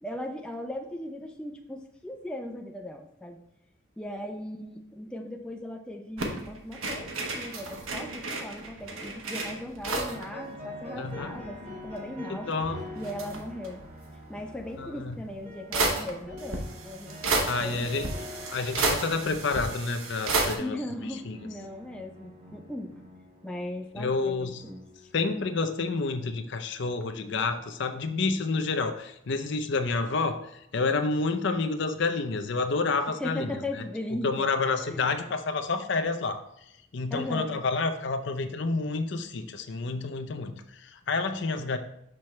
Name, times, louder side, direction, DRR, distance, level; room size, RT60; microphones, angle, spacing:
voice 1, 0.0-3.4 4.0-7.1 7.3-12.5 12.9-13.8 14.3-17.9 20.6-23.0 23.4-24.8 33.2-34.5 34.9-35.1 37.1-37.6, left 1 dB, 5° left, 3 dB, 0.4 m, -38 dB
sound 1, 6.2-10.3 10.6-10.7 10.9-11.9 12.5-13.8 14.9-15.0 15.7-20.6, right 3 dB, 85° right, 1.1 m, -32 dB
sound 2, 10.0-27.0, left 1 dB, 35° right, 1.5 m, -46 dB
voice 2, 11.0-11.3 12.3-12.8 14.8-15.2 17.5-18.1 18.5-20.8 21.3-21.4 24.0-24.6 25.1-30.4 30.7-33.6 34.2-36.4 36.9-41.8, left 3 dB, 60° left, 8 dB, 0.6 m, -29 dB
6.1 x 5.8 x 3.1 m, 0.76 s
head